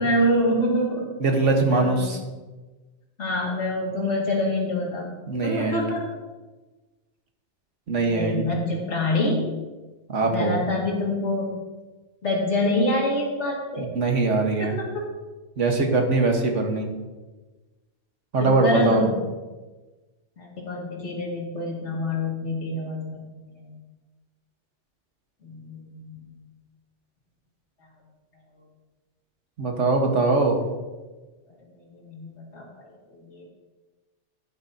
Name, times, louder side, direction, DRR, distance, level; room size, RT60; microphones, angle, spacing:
voice 1, 0.0-1.1 1.7-2.1 3.2-6.1 8.0-9.5 10.3-11.5 12.2-13.9 14.6-15.1 16.9-17.0 18.4-19.2 20.4-23.2 23.5-23.7 25.4-26.3 31.9-33.5, left 1 dB, 70° left, -2 dB, 2.4 m, -26 dB
voice 2, 1.2-2.2 5.3-5.8 7.9-8.5 10.1-10.6 13.8-14.8 15.6-16.9 18.3-19.1 29.6-30.6, right 3 dB, 85° right, 3 dB, 1.7 m, -22 dB
11.5 x 11.0 x 2.8 m, 1.2 s
omnidirectional pair, 1.2 m